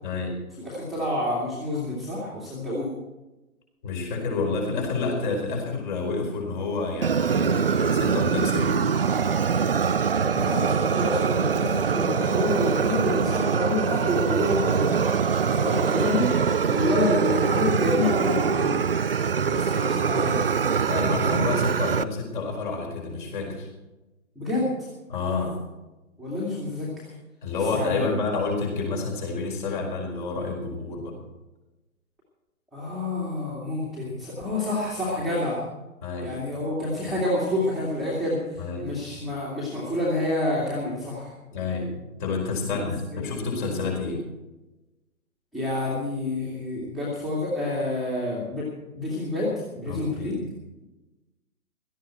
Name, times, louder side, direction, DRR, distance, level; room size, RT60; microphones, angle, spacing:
voice 1, 0.0-0.4 3.8-8.8 20.9-23.7 25.1-25.6 27.4-31.2 36.0-36.3 38.6-38.9 41.5-41.9 42.2-44.2 49.8-50.4, left 4 dB, 35° left, 1 dB, 4.6 m, -29 dB
voice 2, 0.6-2.9 10.3-15.1 15.4-16.3 16.7-18.8 19.4-20.4 24.4-24.9 26.2-27.0 27.7-28.1 32.7-35.6 36.2-41.3 42.7-43.3 45.5-48.7 49.0-50.3, left 1 dB, ahead, -9 dB, 2.2 m, -28 dB
Fire, 7.0-22.0, right 6 dB, 45° right, 0.5 m, -23 dB
17.0 x 13.5 x 4.5 m, 1.0 s
figure-of-eight pair, 135°, 43 cm